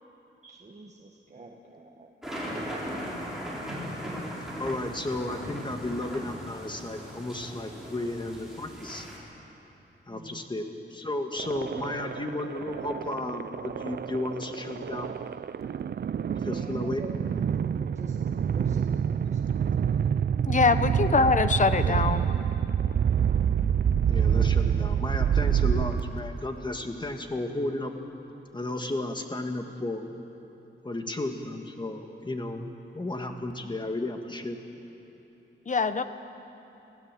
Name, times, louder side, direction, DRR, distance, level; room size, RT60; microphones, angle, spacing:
voice 1, 0.4-2.1 10.1-10.4 16.4-17.3 17.6-18.2 18.5-19.8, right 3 dB, 35° right, 0 dB, 1.5 m, -45 dB
sound 1, 2.2-9.2, equal, ahead, 5.4 m, -38 dB
voice 2, 4.6-9.1 10.1-15.2 16.3-17.0 21.8-22.1 24.1-27.9 28.5-30.1 30.8-34.6, left 2 dB, 25° left, 4 dB, 1.8 m, -33 dB
sound 2, 11.4-26.5, right 8 dB, 55° right, 0.5 m, -27 dB
voice 3, 20.5-22.2 35.7-36.0, left 4 dB, 40° left, 11 dB, 1.0 m, -23 dB
26.5 x 16.5 x 7.6 m, 3.0 s
wide cardioid pair, 115°, 20 cm